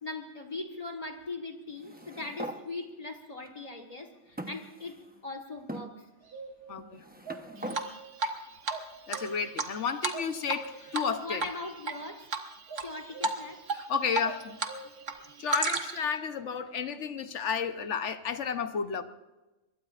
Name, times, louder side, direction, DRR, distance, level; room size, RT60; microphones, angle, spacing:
voice 1, 0.0-5.0 5.2-6.1 11.1-12.3 12.8-13.6, left 3 dB, 30° left, 5 dB, 1.5 m, -40 dB
sound 1, 1.8-2.6 3.4-3.5 4.4-5.2 5.7-5.9 6.8-7.8, right 1 dB, 10° right, 0.8 m, -41 dB
sound 2, 6.2-6.8 7.2-8.2 8.7-9.6 10.1-11.1 12.7-13.7 14.2-15.1, right 4 dB, 50° right, 3.1 m, -44 dB
voice 2, 6.7-7.0 9.1-11.4 13.7-14.6 15.4-19.0, left 6 dB, 75° left, 9 dB, 1.2 m, -32 dB
Drip, 7.7-8.4 8.7-8.8 9.1-10.7 10.9-11.1 11.4-11.9 12.3-12.9 13.2-13.4 13.7-14.7 15.0-16.1, right 3 dB, 80° right, 1.5 m, -31 dB
24.0 x 21.5 x 2.5 m, 1.1 s
omnidirectional pair, 1.2 m